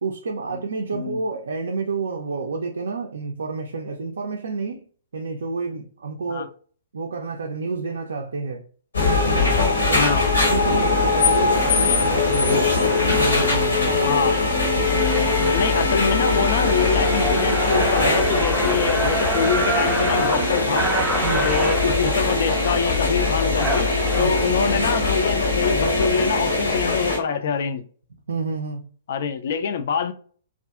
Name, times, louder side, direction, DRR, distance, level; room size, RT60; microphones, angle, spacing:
voice 1, 0.0-4.9 5.1-6.5 6.9-8.6 9.9-10.1 10.5-12.7 13.1-14.3 21.2-21.5 24.2-24.3 28.3-28.9, right 4 dB, 65° right, 0.4 m, -29 dB
sound 1, 8.9-27.2, left 3 dB, 75° left, 1.0 m, -21 dB
sound 2, 12.2-12.3 12.9-13.1 13.6-14.0 14.5-14.6 14.8-24.2, right 2 dB, 5° right, 0.5 m, -28 dB
voice 2, 15.4-20.9 21.4-23.9 24.2-27.8 29.1-30.1, left 6 dB, 55° left, 0.4 m, -25 dB
2.6 x 2.4 x 2.3 m
figure-of-eight pair, 115°, 0 cm